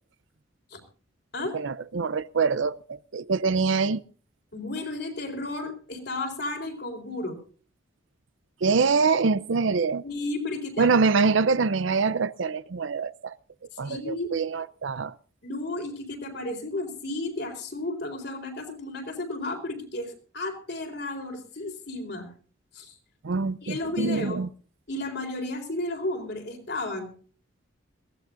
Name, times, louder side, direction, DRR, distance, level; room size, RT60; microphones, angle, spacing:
voice 1, 1.5-4.0 8.6-10.0 10.8-13.3 13.8-15.2 23.2-24.5, right 4 dB, 65° right, 0.5 m, -24 dB
voice 2, 4.5-7.4 10.0-10.9 13.8-14.3 15.4-22.3 22.7-22.9 23.6-24.4 24.9-27.1, left 2 dB, 55° left, 4.1 m, -33 dB
22.0 x 16.5 x 2.5 m
head